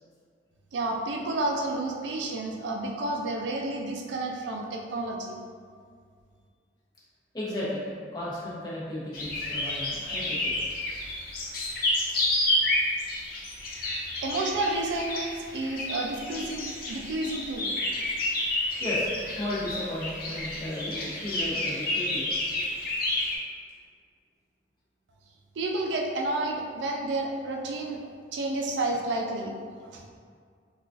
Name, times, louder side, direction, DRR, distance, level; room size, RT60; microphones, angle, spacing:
voice 1, 0.7-5.4 14.2-17.7 25.6-29.6 29.9-30.0, right 2 dB, 80° right, 1 dB, 0.4 m, -30 dB
voice 2, 7.3-7.8 8.1-10.5 18.8-19.1 19.4-22.3, left 1 dB, 25° left, -8 dB, 0.8 m, -34 dB
sound 1, 9.1-23.4, left 1 dB, 50° left, 0.5 m, -30 dB
3.8 x 2.4 x 2.4 m, 2.1 s
head